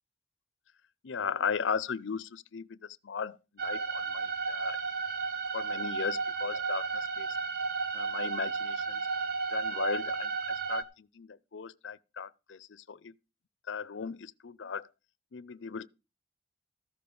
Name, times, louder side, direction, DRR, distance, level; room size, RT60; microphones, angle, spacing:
voice 1, 1.0-4.8 5.5-7.3 7.9-9.1 9.5-13.1 13.7-14.9 15.3-15.9, left 6 dB, 85° left, 0.6 m, -37 dB
sound 1, 3.6-10.8, right 4 dB, 55° right, 1.2 m, -33 dB
14.0 x 6.8 x 5.4 m
head